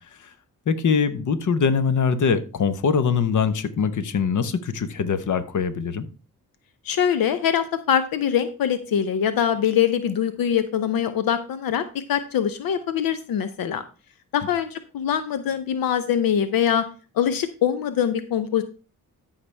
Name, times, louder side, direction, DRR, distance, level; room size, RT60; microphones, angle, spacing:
voice 1, 0.7-6.1, left 6 dB, 60° left, 1.0 m, -23 dB
voice 2, 6.8-13.8 14.3-16.8 17.1-18.6, left 9 dB, 90° left, 0.7 m, -23 dB
13.0 x 5.8 x 3.3 m
cardioid pair, 85°, 34 cm